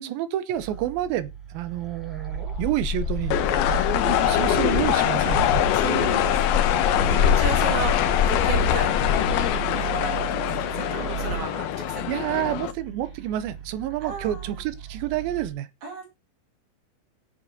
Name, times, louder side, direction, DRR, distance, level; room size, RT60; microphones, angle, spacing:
voice 1, 0.0-3.4 4.2-5.6 7.7-7.8 12.1-15.7, right 13 dB, 80° right, 2.4 m, -29 dB
sound 1, 0.5-15.5, right 9 dB, ahead, 2.4 m, -37 dB
Bird, 2.3-9.6, left 5 dB, 65° left, 1.1 m, -26 dB
sound 2, 3.3-12.7, left 12 dB, 90° left, 2.7 m, -24 dB
voice 2, 5.7-8.0 8.3-9.3 9.6-12.0 12.3-12.5 14.0-14.6 15.8-16.1, right 3 dB, 55° right, 3.2 m, -35 dB
17.0 x 7.9 x 2.7 m
omnidirectional pair, 4.3 m